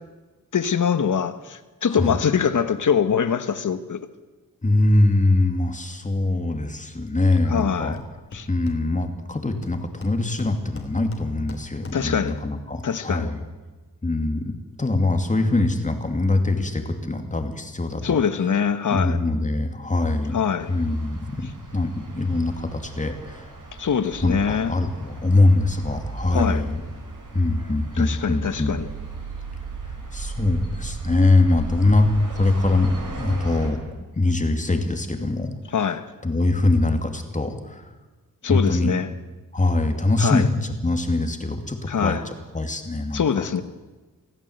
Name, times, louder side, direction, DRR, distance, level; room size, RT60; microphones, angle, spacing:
voice 1, 0.5-4.0 7.5-8.0 8.3-8.5 11.9-12.4 12.8-13.3 18.0-19.2 20.3-20.7 23.8-24.7 26.3-26.6 28.0-28.9 35.7-36.1 38.4-39.1 40.2-40.5 41.9-42.2 43.1-43.6, left 7 dB, 60° left, 1.4 m, -23 dB
voice 2, 4.6-8.0 8.5-13.4 14.0-14.5 14.8-18.2 18.9-20.4 20.7-23.5 24.2-26.8 27.3-28.8 30.1-32.9 33.2-33.8 34.2-35.5 36.2-37.9 38.5-38.9 39.5-42.2 42.5-43.2, left 2 dB, 20° left, 2.7 m, -22 dB
Hammer, 8.0-9.2 9.6-12.3, left 2 dB, 40° left, 3.2 m, -41 dB
sound 1, 20.6-33.7, right 3 dB, 60° right, 6.2 m, -36 dB
25.5 x 16.0 x 8.1 m
wide cardioid pair, 130°, 34 cm